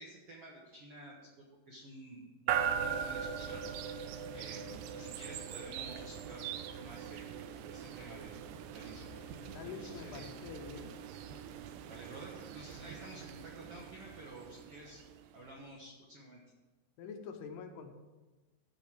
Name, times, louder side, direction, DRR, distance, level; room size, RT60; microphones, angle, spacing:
voice 1, 0.0-3.6 4.3-6.5 6.8-7.3 7.7-9.1 9.6-10.3 11.8-15.0 15.3-16.4, right 1 dB, 65° right, -3 dB, 1.4 m, -51 dB
sound 1, 2.5-15.5, right 8 dB, 85° right, 2.6 m, -41 dB
Brass instrument, 8.8-11.9, left 3 dB, 50° left, 2.0 m, -56 dB
voice 2, 9.5-10.9 17.0-17.9, left 6 dB, 80° left, 5 dB, 2.9 m, -46 dB
14.5 x 5.3 x 6.1 m, 1.2 s
omnidirectional pair, 4.8 m